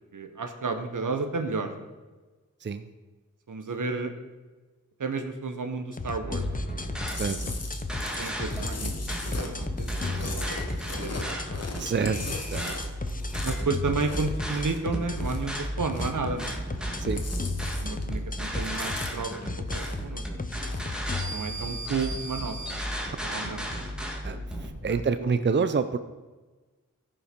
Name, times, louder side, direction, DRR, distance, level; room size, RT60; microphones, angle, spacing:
voice 1, 0.1-1.9 3.5-4.1 5.0-6.6 8.0-8.9 9.2-12.0 13.4-16.6 17.0-17.1 17.6-20.2 21.2-22.8 23.2-23.7 24.9-25.4, right 4 dB, 80° right, 7 dB, 1.1 m, -32 dB
sound 1, 5.9-21.3, left 3 dB, 30° left, 0.7 m, -35 dB
sound 2, 6.2-24.7, equal, 5° right, 1.9 m, -34 dB
Chewing mastication, 7.1-15.5 15.8-16.8 17.0-18.2 18.4-20.1 20.5-20.9, left 3 dB, 55° left, 1.3 m, -40 dB
voice 2, 7.2-7.5 11.8-12.7 17.0-17.2 24.2-26.0, right 5 dB, 35° right, 11 dB, 0.5 m, -28 dB
14.0 x 5.6 x 5.2 m, 1.3 s
wide cardioid pair, 75°, 30 cm